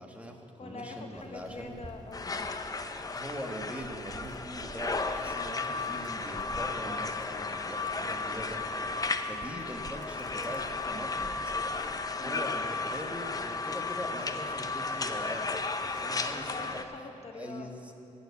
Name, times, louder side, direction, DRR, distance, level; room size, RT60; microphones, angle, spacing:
voice 1, 0.0-1.8 3.1-8.6 9.2-10.6 10.9-11.3 12.2-16.8 17.3-17.9, equal, 10° right, 2 dB, 1.5 m, -42 dB
voice 2, 0.6-2.5 12.2-12.5 16.3-17.9, left 3 dB, 55° left, 4 dB, 1.0 m, -44 dB
Dog, 1.1-12.5, right 2 dB, 30° right, 1.0 m, -52 dB
sound 1, 2.1-16.8, left 3 dB, 30° left, 0.7 m, -34 dB
15.5 x 7.1 x 8.2 m, 2.9 s
wide cardioid pair, 100°, 13 cm